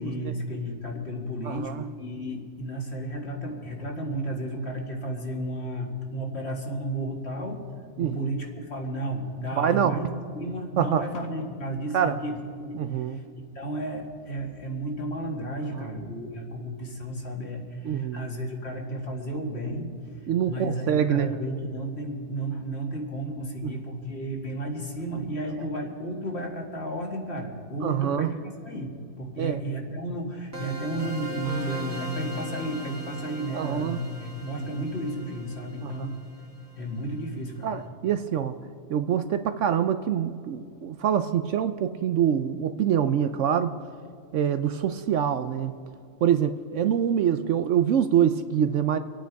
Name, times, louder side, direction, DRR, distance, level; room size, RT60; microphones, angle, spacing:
voice 1, 0.0-7.6 8.0-12.4 12.7-12.8 13.1-13.2 13.6-19.9 20.5-36.2 36.7-37.7, right 1 dB, 50° left, 1 dB, 2.1 m, -33 dB
voice 2, 1.4-1.8 8.0-8.3 9.6-10.0 10.8-11.0 11.9-12.1 12.8-13.2 15.7-15.9 17.8-18.3 20.3-21.3 23.6-23.8 27.8-28.3 29.4-29.6 33.5-34.0 35.8-35.9 37.6-38.6 38.9-43.7 44.3-45.8 46.2-49.0, right 9 dB, 65° right, 10 dB, 0.9 m, -25 dB
sound 1, 30.5-37.2, equal, 10° right, 1.6 m, -39 dB
26.0 x 9.1 x 4.6 m, 2.3 s
omnidirectional pair, 1.5 m